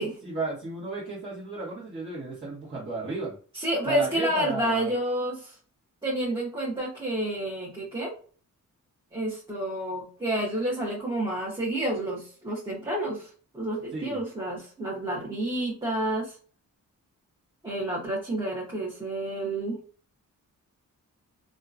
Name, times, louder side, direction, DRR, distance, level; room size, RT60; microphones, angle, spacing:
voice 1, 0.2-3.3 3.8-4.9 13.9-14.2, right 3 dB, 35° right, -9 dB, 1.4 m, -34 dB
voice 2, 3.5-5.5 6.0-8.1 9.1-13.3 13.5-16.3 17.6-19.8, right 1 dB, 15° right, -6 dB, 1.0 m, -29 dB
2.8 x 2.4 x 2.5 m, 0.40 s
wide cardioid pair, 120°, 32 cm